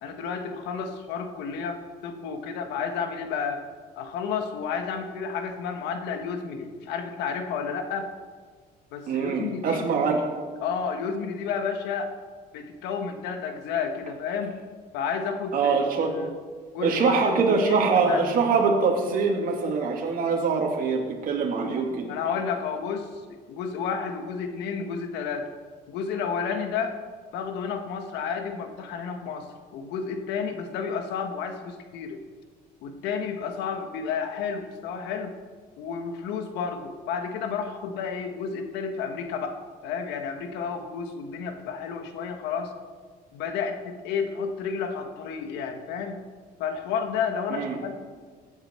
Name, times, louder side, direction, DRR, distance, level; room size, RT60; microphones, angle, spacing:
voice 1, 0.0-3.6 4.0-8.1 8.9-9.8 10.6-12.1 12.5-14.6 14.9-16.4 16.7-18.2 22.1-25.5 25.9-27.0 27.3-32.2 32.8-35.3 35.8-42.7 43.3-46.2 46.6-47.9, left 6 dB, 90° left, 6 dB, 1.4 m, -31 dB
voice 2, 9.1-10.2 15.5-16.1 16.8-22.1 47.5-47.8, right 5 dB, 55° right, 0 dB, 2.3 m, -24 dB
16.0 x 9.0 x 4.4 m, 1.5 s
cardioid pair, 110°, 17 cm